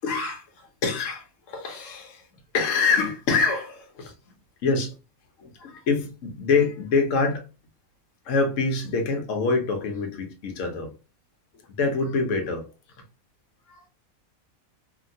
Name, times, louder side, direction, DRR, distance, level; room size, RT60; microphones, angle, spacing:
voice 1, 0.0-0.4 0.8-2.2 2.5-4.1 4.6-4.9 5.4-7.4 8.3-10.9 11.8-12.6 13.8-13.9, left 4 dB, 70° left, 1.0 m, -25 dB
2.8 x 2.8 x 2.6 m
omnidirectional pair, 1.4 m